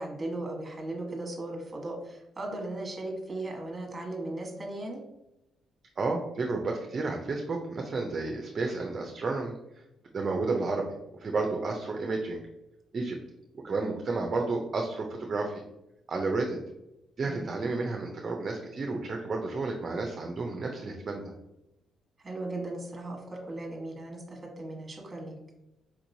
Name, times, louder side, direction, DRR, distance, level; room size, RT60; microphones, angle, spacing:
voice 1, 0.0-5.0 17.2-17.6 22.2-25.4, right 2 dB, 25° right, 0 dB, 1.2 m, -37 dB
voice 2, 6.0-9.5 10.1-10.9 11.2-12.4 12.9-13.2 13.6-15.6 16.1-16.6 17.2-21.2, right 3 dB, 40° right, 2 dB, 0.5 m, -31 dB
4.5 x 2.9 x 2.6 m, 0.90 s
cardioid pair, 105°, 0 cm